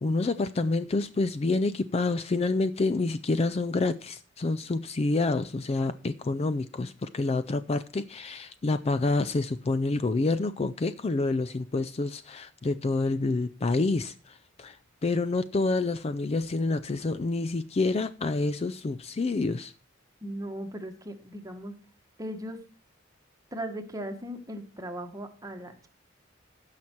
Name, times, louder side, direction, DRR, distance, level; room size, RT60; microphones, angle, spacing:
voice 1, 0.0-14.8 15.0-19.7, left 3 dB, 30° left, 0.4 m, -28 dB
voice 2, 20.2-21.7 22.2-22.6 23.5-25.9, right 1 dB, 20° right, 1.4 m, -38 dB
15.5 x 5.8 x 4.5 m
head